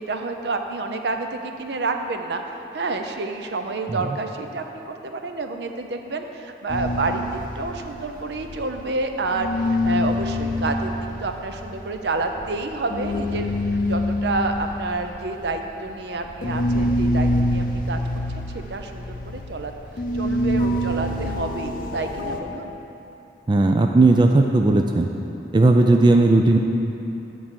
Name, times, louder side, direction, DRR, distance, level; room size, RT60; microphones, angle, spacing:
voice 1, 0.0-2.4 2.7-7.2 7.5-13.5 13.9-18.0 18.4-19.7 20.1-22.7, right 3 dB, 70° right, 5 dB, 0.6 m, -29 dB
sound 1, 6.7-9.1 9.3-22.4, left 1 dB, 50° left, 0.6 m, -26 dB
voice 2, 23.5-25.1 25.5-26.6, right 2 dB, 25° right, 3 dB, 0.3 m, -16 dB
8.7 x 4.7 x 7.4 m, 2.9 s
head